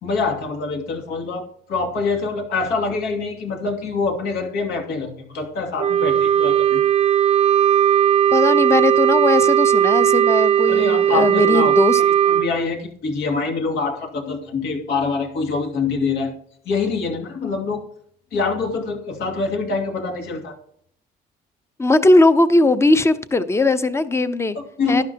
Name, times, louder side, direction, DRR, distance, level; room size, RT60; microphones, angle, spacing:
voice 1, 0.0-6.8 10.7-16.3 16.6-17.8 18.3-20.5 24.5-25.0, left 4 dB, 80° left, 2.6 m, -25 dB
Wind instrument woodwind instrument, 5.8-12.5, right 10 dB, 40° right, 0.6 m, -17 dB
voice 2, 8.3-12.0 21.8-24.6 24.9-25.0, left 2 dB, 15° left, 0.8 m, -18 dB
12.0 x 11.0 x 2.9 m
cardioid pair, 110°, 17 cm